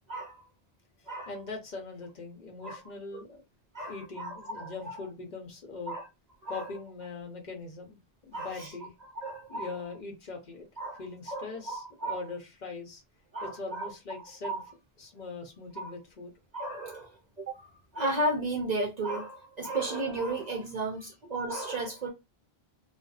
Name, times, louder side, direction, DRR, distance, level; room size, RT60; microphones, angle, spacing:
voice 1, 0.1-0.5 1.1-1.3 2.6-2.8 3.1-3.2 3.7-5.0 5.9-6.0 6.4-6.7 8.3-8.7 9.2-9.7 10.8-11.0 11.3-12.2 13.3-13.9 14.4-14.6 15.8-15.9 16.5-17.1 17.5-17.6 17.9-22.1, right 2 dB, 55° right, 0.5 m, -34 dB
voice 2, 1.0-3.4 3.9-6.0 6.5-8.9 9.5-10.7 11.0-13.0 13.4-14.6 15.0-16.3, left 3 dB, 50° left, 0.8 m, -41 dB
2.5 x 2.1 x 2.4 m
omnidirectional pair, 1.1 m